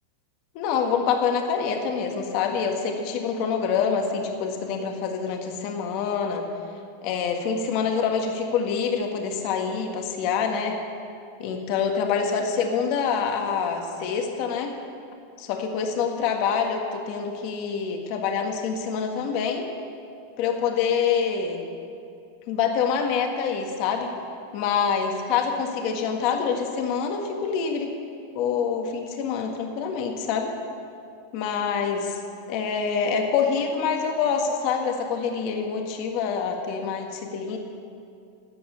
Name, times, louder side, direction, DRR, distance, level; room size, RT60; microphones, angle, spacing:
voice 1, 0.5-6.5 7.0-10.8 11.4-14.7 15.4-19.7 20.4-21.6 22.5-24.1 24.5-27.9 28.3-30.5 31.3-32.2 32.5-37.6, left 6 dB, 50° left, 3 dB, 1.7 m, -26 dB
12.0 x 7.9 x 9.2 m, 2.4 s
supercardioid pair, 140°, 0 cm